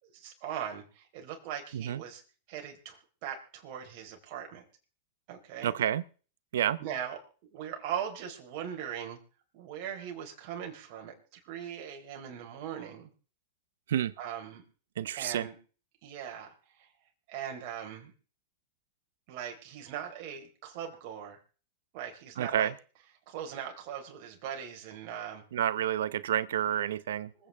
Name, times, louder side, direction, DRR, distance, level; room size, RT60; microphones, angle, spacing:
voice 1, 0.0-2.2 2.5-4.6 5.3-5.7 6.8-9.2 9.5-13.1 14.2-14.6 15.1-15.5 16.0-16.9 17.3-18.1 19.3-21.4 21.9-22.7 23.3-25.4 27.4-27.5, right 9 dB, 55° right, 2 dB, 4.2 m, -40 dB
voice 2, 5.6-6.0 6.5-6.8 13.9-14.1 15.0-15.5 22.4-22.7 25.5-27.3, right 10 dB, 80° right, 18 dB, 0.8 m, -29 dB
25.5 x 9.0 x 3.5 m, 0.39 s
hypercardioid pair, 115°, 0 cm